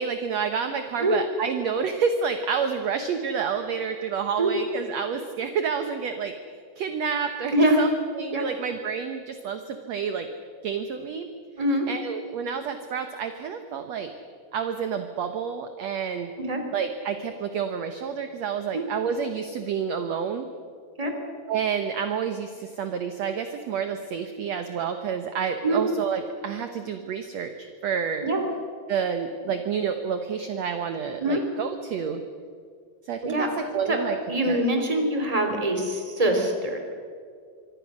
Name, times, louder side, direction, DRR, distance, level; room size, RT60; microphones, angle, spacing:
voice 1, 0.0-6.3 6.8-10.3 10.6-11.3 11.9-14.1 14.5-16.3 16.7-20.5 21.5-28.3 28.9-32.2 33.1-33.5 33.7-34.2 34.5-34.6, right 6 dB, 60° right, 7 dB, 2.0 m, -29 dB
voice 2, 11.6-11.9 16.4-16.6 18.7-18.8 21.0-21.1 25.6-25.9 28.2-28.5 31.2-31.4 33.2-33.5 33.9-34.0 34.3-36.8, right 1 dB, 10° right, 4 dB, 3.1 m, -24 dB
25.0 x 25.0 x 6.4 m, 2.1 s
omnidirectional pair, 3.9 m